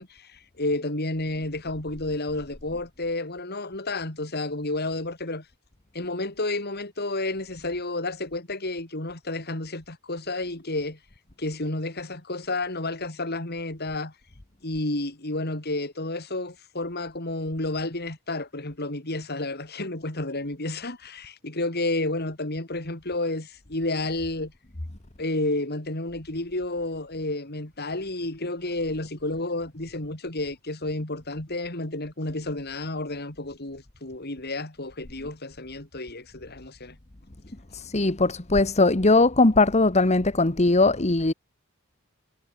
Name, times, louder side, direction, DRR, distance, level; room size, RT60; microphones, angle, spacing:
voice 1, 0.0-5.4 5.9-11.0 11.4-14.1 14.6-24.5 25.2-37.0, left 2 dB, 45° left, 3.5 m, -31 dB
voice 2, 37.7-41.3, left 2 dB, 30° left, 1.3 m, -20 dB
head